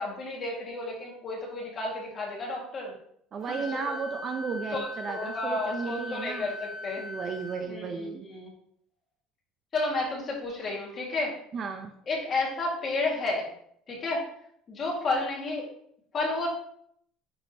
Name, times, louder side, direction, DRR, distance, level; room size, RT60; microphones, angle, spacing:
voice 1, 0.0-2.9 3.6-3.8 4.7-7.0 7.7-8.5 9.7-11.3 12.1-13.5 13.9-14.2 14.7-15.7 16.1-16.5, left 2 dB, 25° left, -2 dB, 1.9 m, -31 dB
voice 2, 3.3-6.5 7.0-8.3 11.5-11.9, right 5 dB, 30° right, 5 dB, 0.6 m, -34 dB
Wind instrument woodwind instrument, 3.4-7.6, left 2 dB, 10° right, 1.4 m, -40 dB
9.5 x 4.8 x 2.9 m, 0.69 s
cardioid pair, 170°, 0 cm